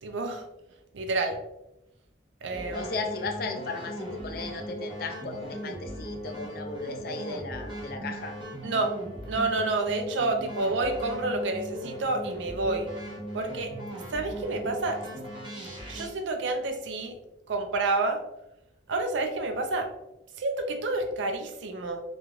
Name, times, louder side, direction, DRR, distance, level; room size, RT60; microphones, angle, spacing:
voice 1, 0.0-0.4 0.9-1.4 2.4-2.9 8.6-8.9 9.2-12.9 13.3-13.7 14.1-15.0 15.9-17.1 17.5-18.2 18.9-19.9 20.4-22.0, right 2 dB, 80° right, 5 dB, 0.4 m, -29 dB
sound 1, 2.5-16.1, equal, 25° right, 0.6 m, -38 dB
voice 2, 2.7-8.3, left 3 dB, 50° left, 4 dB, 0.4 m, -36 dB
3.1 x 2.4 x 2.4 m, 0.89 s
head